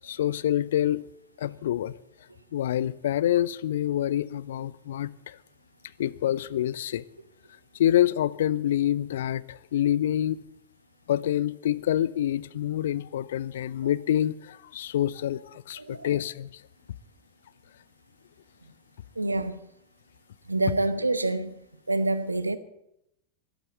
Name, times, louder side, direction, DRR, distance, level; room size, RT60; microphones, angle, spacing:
voice 1, 0.0-1.0 1.4-1.9 2.5-5.4 6.0-7.0 7.8-10.4 11.1-16.5, left 11 dB, 60° left, 0.5 m, -26 dB
voice 2, 15.8-16.1 18.6-18.7 19.2-19.6 20.5-21.5 21.9-22.6, right 2 dB, 80° right, 0.9 m, -27 dB
13.0 x 11.5 x 8.1 m
figure-of-eight pair, 90°, 0 cm